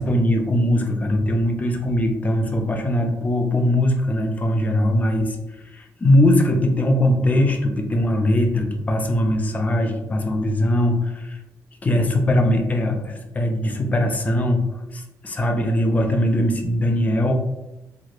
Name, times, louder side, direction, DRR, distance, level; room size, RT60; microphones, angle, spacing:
voice 1, 0.0-5.4 5.7-11.4 11.8-14.6 14.9-17.3, left 1 dB, 25° left, 4 dB, 0.4 m, -20 dB
3.1 x 3.0 x 2.4 m, 0.97 s
cardioid pair, 125°, 7 cm